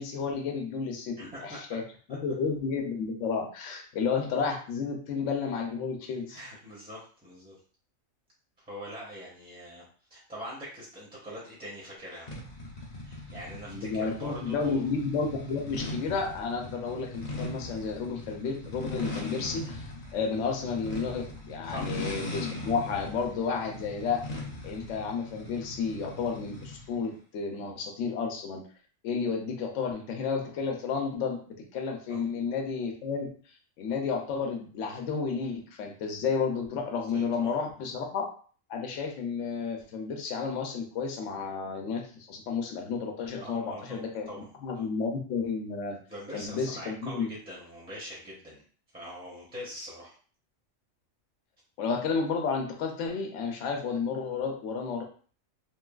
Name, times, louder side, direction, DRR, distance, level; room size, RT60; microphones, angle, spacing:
voice 1, 0.0-1.8 2.1-6.4 13.7-19.8 20.1-24.2 24.6-28.6 29.0-33.3 33.8-38.2 38.7-42.0 42.3-44.3 44.6-46.0 46.3-47.3 51.8-55.0, left 5 dB, 70° left, 2 dB, 0.9 m, -31 dB
voice 2, 1.2-1.6 6.0-7.6 8.6-9.8 10.1-12.3 13.0-14.8 21.6-21.9 32.1-32.2 37.0-37.6 43.4-44.5 44.8-44.9 46.1-48.6 48.9-50.2, equal, 10° right, -6 dB, 0.6 m, -43 dB
sound 1, 12.3-27.0, left 2 dB, 45° left, 0.5 m, -39 dB
3.1 x 2.3 x 2.3 m, 0.42 s
omnidirectional pair, 1.4 m